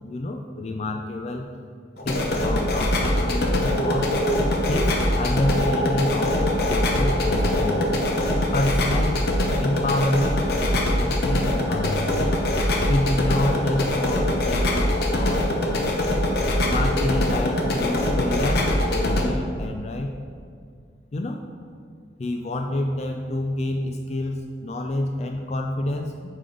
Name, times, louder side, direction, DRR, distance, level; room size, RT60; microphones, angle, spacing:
voice 1, 0.0-1.5 2.0-4.2 4.7-7.8 8.5-9.3 9.6-12.2 12.9-15.5 16.6-20.1 21.1-21.4 22.2-26.3, left 1 dB, 35° left, 4 dB, 0.3 m, -28 dB
sound 1, 2.0-19.2, left 1 dB, 55° left, 0.8 m, -23 dB
7.7 x 5.0 x 3.9 m, 2.2 s
head